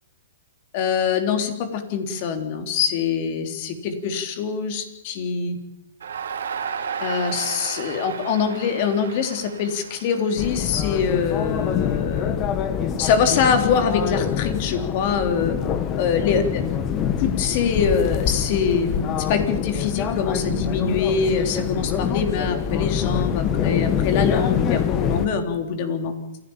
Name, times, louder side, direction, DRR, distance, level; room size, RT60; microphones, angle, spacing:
voice 1, 0.7-5.6 7.0-12.4 13.0-15.5 16.0-16.6 17.2-26.1, left 6 dB, 45° left, 6 dB, 3.6 m, -24 dB
Crowd, 6.0-11.2, right 7 dB, 70° right, 2.8 m, -33 dB
sound 1, 10.4-25.3, left 8 dB, 30° left, 1.8 m, -25 dB
28.5 x 12.0 x 9.0 m, 0.91 s
hypercardioid pair, 120°, 0 cm